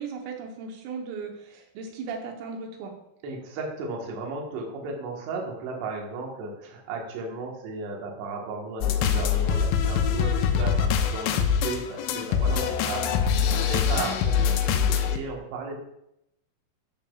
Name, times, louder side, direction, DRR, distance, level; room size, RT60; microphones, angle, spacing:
voice 1, 0.0-2.9 13.2-13.6, right 5 dB, 90° right, 2 dB, 3.7 m, -37 dB
voice 2, 3.2-13.1 13.6-15.8, right 3 dB, 65° right, -1 dB, 3.2 m, -35 dB
sound 1, 8.8-15.2, left 7 dB, 80° left, 3.0 m, -24 dB
15.0 x 5.7 x 2.4 m, 0.80 s
omnidirectional pair, 5.8 m